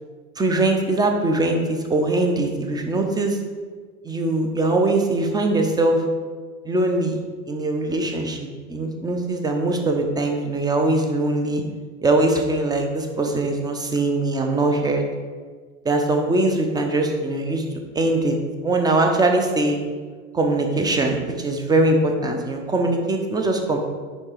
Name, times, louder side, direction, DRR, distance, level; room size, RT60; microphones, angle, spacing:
voice 1, 0.4-3.4 4.0-6.0 6.6-7.2 7.5-11.6 12.0-15.1 15.8-17.6 17.9-18.4 18.6-19.8 20.3-23.8, right 2 dB, 10° right, 3 dB, 0.7 m, -21 dB
9.7 x 3.8 x 3.2 m, 1.5 s
figure-of-eight pair, 75°, 42 cm